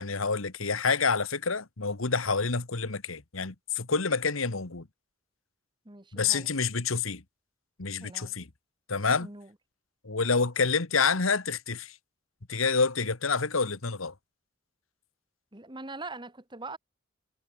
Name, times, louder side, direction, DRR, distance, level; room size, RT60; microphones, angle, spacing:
voice 1, 0.0-4.8 6.1-7.2 7.8-8.5 8.9-9.3 10.0-11.9 12.5-14.1, left 4 dB, 85° left, 1.6 m, -28 dB
voice 2, 5.8-6.5 8.0-8.3 9.2-9.5 15.5-16.8, right 3 dB, 25° right, 1.8 m, -42 dB
head